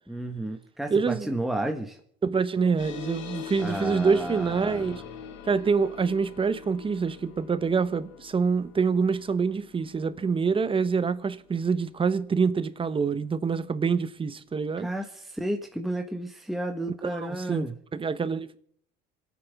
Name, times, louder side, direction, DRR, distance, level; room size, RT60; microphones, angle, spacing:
voice 1, 0.1-2.0 3.6-5.0 14.8-17.8, right 1 dB, ahead, 1.3 m, -32 dB
voice 2, 0.9-1.3 2.2-5.0 5.4-14.9 17.0-17.6 17.9-18.6, right 5 dB, 25° right, 1.0 m, -26 dB
sound 1, 2.8-13.7, left 8 dB, 70° left, 2.0 m, -44 dB
27.0 x 9.3 x 3.6 m
supercardioid pair, 85°, 21 cm